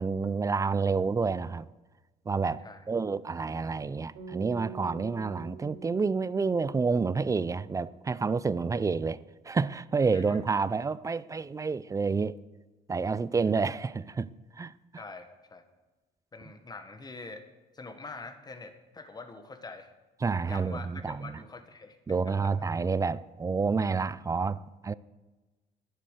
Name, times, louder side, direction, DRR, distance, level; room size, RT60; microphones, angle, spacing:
voice 1, 0.0-1.7 2.3-12.4 12.9-14.3 14.6-14.7 20.2-21.4 22.1-24.9, right 4 dB, 20° right, 0.4 m, -29 dB
sound 1, 4.1-8.4, right 4 dB, 85° right, 4.4 m, -47 dB
voice 2, 14.9-15.6 16.3-17.4 17.7-19.9 20.4-22.0, left 3 dB, 25° left, 1.5 m, -44 dB
11.0 x 11.0 x 6.5 m
cardioid pair, 110°, 17 cm